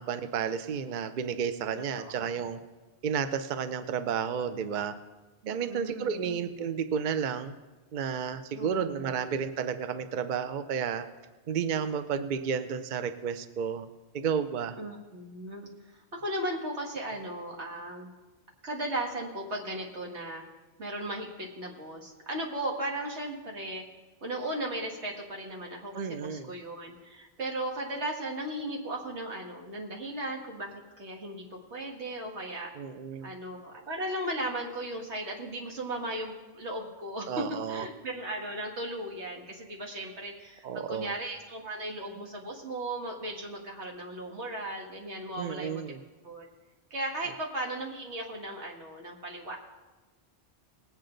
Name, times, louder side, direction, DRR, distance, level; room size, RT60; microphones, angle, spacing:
voice 1, 0.0-2.6 3.0-5.0 5.5-7.5 7.9-11.1 11.5-13.9 14.1-14.8 25.9-26.5 32.8-33.3 37.3-37.9 40.6-41.1 45.4-46.0, right 7 dB, 55° right, 10 dB, 0.7 m, -32 dB
voice 2, 1.9-2.6 5.4-6.2 8.5-9.1 14.8-15.7 16.1-18.1 18.6-20.4 20.8-23.8 24.2-32.7 33.2-45.8 46.2-46.5 46.9-49.6, right 1 dB, 90° right, -1 dB, 2.1 m, -36 dB
19.5 x 8.3 x 3.9 m, 1.2 s
omnidirectional pair, 1.1 m